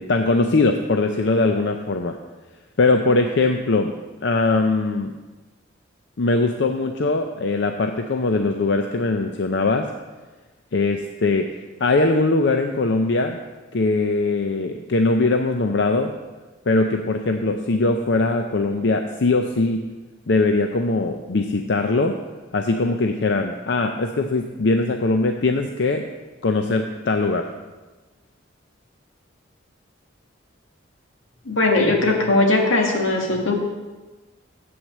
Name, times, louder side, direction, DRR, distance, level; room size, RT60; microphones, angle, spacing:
voice 1, 0.0-2.2 2.8-3.9 4.2-5.1 6.2-9.9 10.7-11.5 11.8-13.4 13.7-16.1 16.7-19.8 20.3-22.2 22.5-26.0 26.4-27.5, left 3 dB, 60° left, 5 dB, 0.5 m, -21 dB
voice 2, 31.5-33.5, left 2 dB, 85° left, 0 dB, 1.9 m, -19 dB
8.0 x 6.2 x 7.4 m, 1.2 s
head